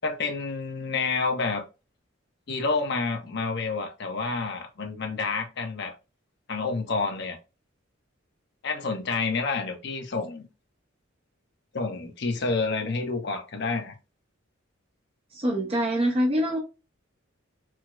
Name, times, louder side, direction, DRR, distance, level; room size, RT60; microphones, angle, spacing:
voice 1, 0.0-1.6 2.5-5.9 6.5-7.4 8.6-10.5 11.7-13.9, left 4 dB, 60° left, 0.8 m, -29 dB
voice 2, 15.3-16.6, equal, 30° right, 0.6 m, -24 dB
4.5 x 2.0 x 2.3 m
head